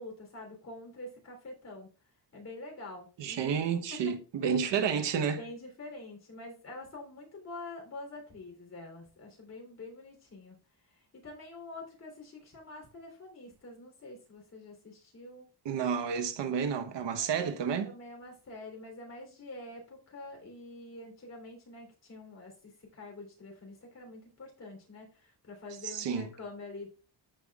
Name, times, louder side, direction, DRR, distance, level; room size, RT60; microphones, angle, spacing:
voice 1, 0.0-1.9 2.3-3.6 3.9-4.2 5.4-10.6 10.9-15.5 17.3-26.9, left 2 dB, 40° left, 3.5 m, -46 dB
voice 2, 3.2-5.4 15.6-17.9 25.9-26.3, right 7 dB, 85° right, 1.2 m, -30 dB
13.5 x 5.7 x 2.4 m
wide cardioid pair, 160°, 42 cm